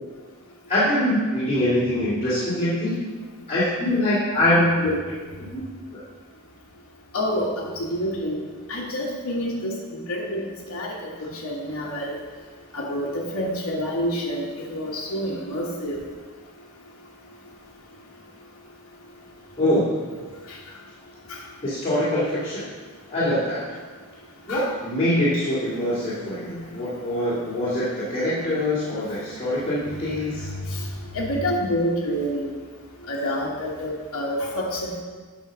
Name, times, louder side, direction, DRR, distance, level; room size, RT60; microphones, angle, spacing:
voice 1, 0.7-3.0 3.5-4.9 5.5-5.6 19.6-19.9 21.6-22.6 23.1-23.6 24.5-30.5, left 1 dB, 30° left, -11 dB, 2.2 m, -23 dB
voice 2, 7.1-8.4 8.7-9.8 10.1-10.4 10.7-11.1 11.4-12.1 12.7-16.0 21.3-21.4 24.5-24.7 30.7-30.8 31.1-32.5 33.1-35.0, equal, 70° left, -5 dB, 1.3 m, -27 dB
8.7 x 4.9 x 6.2 m, 1.5 s
head